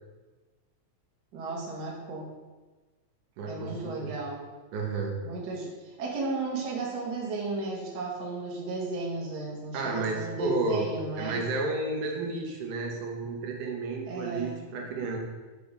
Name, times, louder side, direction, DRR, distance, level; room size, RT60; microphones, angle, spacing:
voice 1, 1.3-2.3 3.5-4.4 5.2-11.4 14.1-14.7, right 3 dB, 55° right, -3 dB, 1.2 m, -34 dB
voice 2, 3.4-4.1 4.7-5.2 9.7-15.2, right 3 dB, 90° right, 1 dB, 2.5 m, -32 dB
6.8 x 5.1 x 3.6 m, 1.3 s
omnidirectional pair, 3.5 m